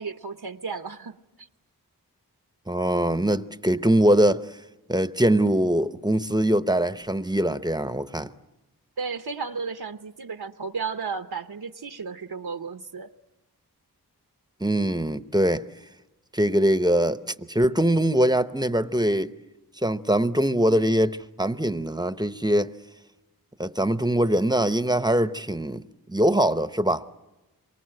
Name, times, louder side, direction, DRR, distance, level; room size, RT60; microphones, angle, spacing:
voice 1, 0.0-1.5 9.0-13.1, right 5 dB, 75° right, 0.8 m, -34 dB
voice 2, 2.7-4.4 4.9-8.3 14.6-15.7 16.3-19.3 19.8-22.7 23.6-27.0, right 1 dB, 10° right, 0.8 m, -22 dB
27.0 x 24.0 x 7.7 m
wide cardioid pair, 50°, 38 cm